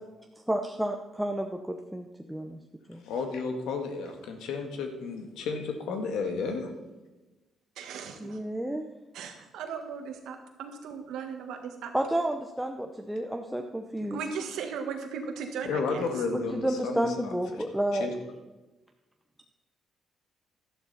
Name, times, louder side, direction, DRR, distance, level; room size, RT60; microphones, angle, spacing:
voice 1, 0.5-2.6 2.9-3.0 8.2-8.8 11.9-14.2 16.3-18.1, right 1 dB, 5° right, 3 dB, 0.8 m, -31 dB
voice 2, 3.0-6.7 15.6-17.6 17.9-18.1, left 4 dB, 85° left, 5 dB, 1.7 m, -32 dB
voice 3, 7.8-8.4 9.1-11.9 14.1-16.1, right 6 dB, 85° right, 5 dB, 1.6 m, -37 dB
12.0 x 11.0 x 4.2 m, 1.1 s
cardioid pair, 90°, 0 cm